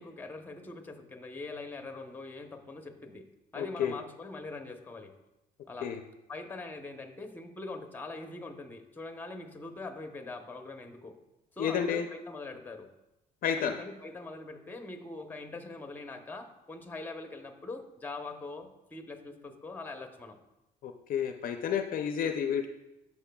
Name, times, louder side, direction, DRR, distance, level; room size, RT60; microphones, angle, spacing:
voice 1, 0.0-3.3 3.5-5.1 5.7-5.9 6.3-11.2 11.6-12.9 13.6-20.4, left 3 dB, 10° left, 5 dB, 0.8 m, -42 dB
voice 2, 3.6-3.9 5.8-6.0 11.6-12.1 13.4-13.8 20.8-22.7, left 8 dB, 55° left, 6 dB, 0.5 m, -30 dB
11.5 x 5.3 x 2.3 m, 0.94 s
cardioid pair, 110°, 17 cm